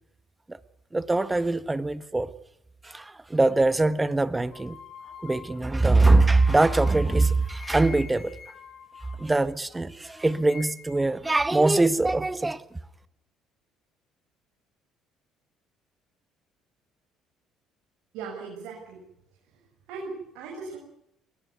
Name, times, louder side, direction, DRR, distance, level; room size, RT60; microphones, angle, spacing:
voice 1, 0.9-2.3 2.8-4.8 5.2-8.4 9.2-12.6, right 2 dB, 15° right, 1.5 m, -22 dB
sound 1, 4.5-9.8 10.1-11.2, left 7 dB, 55° left, 4.7 m, -46 dB
voice 2, 18.1-19.0 19.9-20.8, right 4 dB, 75° right, 7.2 m, -38 dB
21.5 x 19.5 x 9.6 m
hypercardioid pair, 65°, 0 cm